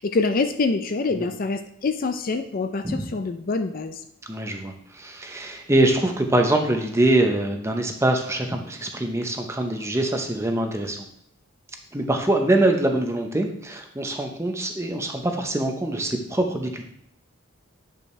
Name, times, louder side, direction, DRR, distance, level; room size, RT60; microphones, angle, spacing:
voice 1, 0.0-4.0, left 3 dB, 40° left, 8 dB, 0.4 m, -25 dB
voice 2, 4.3-11.1 11.9-16.8, right 1 dB, 15° right, 4 dB, 0.7 m, -24 dB
8.6 x 5.4 x 3.2 m, 0.72 s
head